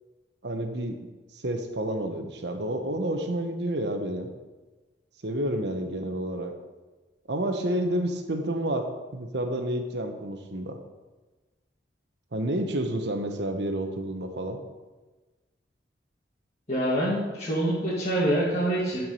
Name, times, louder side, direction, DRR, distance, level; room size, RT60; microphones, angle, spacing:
voice 1, 0.4-1.0 1.3-4.3 5.2-6.5 7.3-10.8 12.3-14.6, right 1 dB, 70° right, 5 dB, 1.0 m, -29 dB
voice 2, 16.7-19.0, right 1 dB, 35° left, -9 dB, 1.7 m, -25 dB
10.5 x 4.8 x 5.4 m, 1.2 s
head